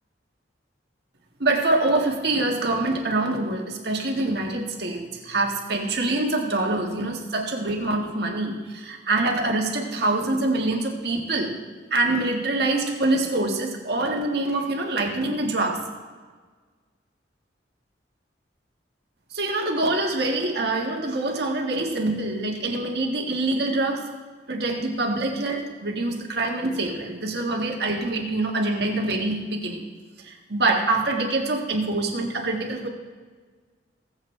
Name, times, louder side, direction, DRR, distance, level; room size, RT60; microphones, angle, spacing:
voice 1, 1.4-11.5 11.9-15.8 19.3-24.0 24.5-29.8 30.2-32.9, right 2 dB, 60° right, 1 dB, 1.6 m, -25 dB
19.5 x 8.0 x 3.3 m, 1.5 s
head